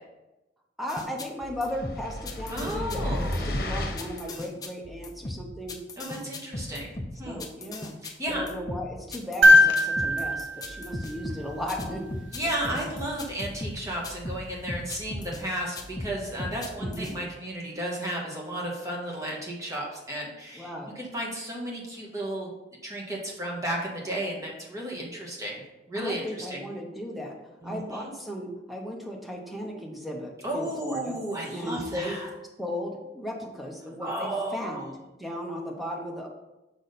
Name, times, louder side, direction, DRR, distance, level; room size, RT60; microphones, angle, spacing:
voice 1, 0.8-6.4 7.2-8.0 8.3-12.1 12.6-12.9 16.8-17.2 20.5-20.9 26.0-27.4 27.6-31.1 31.5-32.2 32.6-36.3, equal, ahead, -1 dB, 0.9 m, -36 dB
sound 1, 0.9-15.4 15.8-17.2, left 1 dB, 20° left, 0.6 m, -37 dB
sound 2, 1.7-4.3, left 1 dB, 55° left, 1.0 m, -32 dB
voice 2, 2.5-3.6 6.0-6.9 7.2-7.4 8.0-8.4 12.3-22.5 22.8-25.5 25.9-26.6 27.6-28.1 30.4-32.3 34.0-34.8, right 1 dB, 20° right, -2 dB, 1.4 m, -33 dB
sound 3, 9.4-11.7 13.8-13.9, left 1 dB, 90° right, 0.7 m, -21 dB
6.2 x 5.1 x 4.1 m, 0.98 s
head